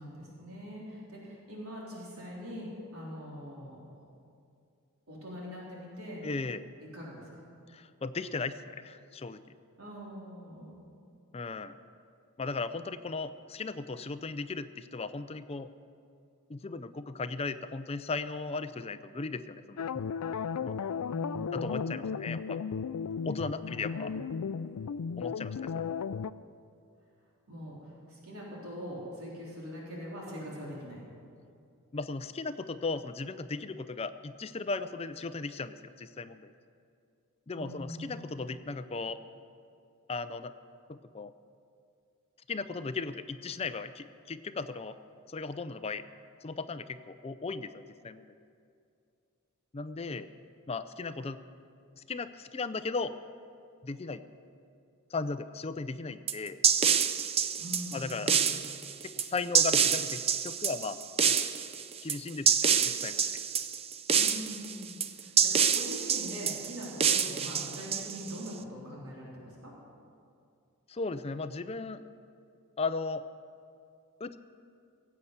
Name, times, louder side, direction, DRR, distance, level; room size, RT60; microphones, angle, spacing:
voice 1, 0.0-3.8 5.1-6.2 6.8-7.4 9.8-10.9 21.1-22.5 23.6-24.2 27.5-31.0 37.6-38.3 57.6-58.6 64.1-69.7, equal, 75° right, -5 dB, 3.7 m, -43 dB
voice 2, 6.2-6.7 7.7-9.4 11.3-11.8 12.4-15.7 16.5-20.0 20.6-20.8 21.5-22.6 23.2-24.1 25.2-25.9 31.9-36.5 37.5-39.2 40.1-40.5 40.9-41.3 42.5-45.0 45.3-46.0 46.4-48.3 49.7-50.3 50.7-51.4 52.1-53.2 53.8-54.2 55.1-56.6 57.9-58.3 59.0-61.0 62.0-62.5 62.8-63.3 70.9-72.0 72.8-73.2 74.2-74.4, left 4 dB, 25° left, 12 dB, 0.4 m, -36 dB
sound 1, 19.8-26.3, left 6 dB, 85° left, 0.4 m, -35 dB
sound 2, 56.3-68.5, right 7 dB, 25° right, 0.5 m, -27 dB
16.5 x 8.5 x 8.1 m, 2.5 s
head